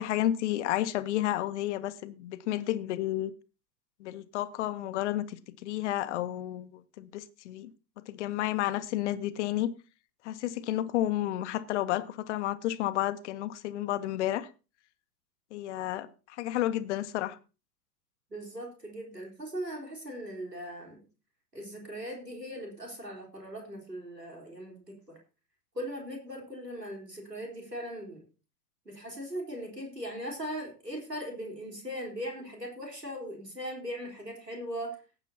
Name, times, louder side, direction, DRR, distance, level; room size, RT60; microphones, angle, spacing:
voice 1, 0.0-3.3 4.0-7.7 8.1-9.7 10.2-14.5 15.5-17.4, left 13 dB, 45° left, 13 dB, 1.0 m, -31 dB
voice 2, 18.3-21.0 21.5-25.2 25.7-28.2 28.9-35.0, equal, 90° right, 0 dB, 4.0 m, -39 dB
18.5 x 9.1 x 2.8 m, 0.32 s
figure-of-eight pair, 95°, 47 cm